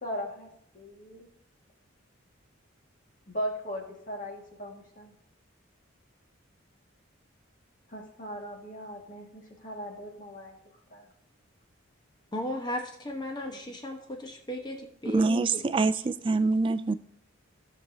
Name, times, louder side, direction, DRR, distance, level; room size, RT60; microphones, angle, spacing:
voice 1, 0.0-1.3 3.3-5.2 7.9-10.6 10.9-11.1 13.5-13.8, equal, 40° left, 1.9 m, -38 dB
voice 2, 12.3-15.6, left 1 dB, 20° left, 1.1 m, -35 dB
voice 3, 15.1-16.9, right 3 dB, 25° right, 0.3 m, -25 dB
16.5 x 6.1 x 2.8 m
head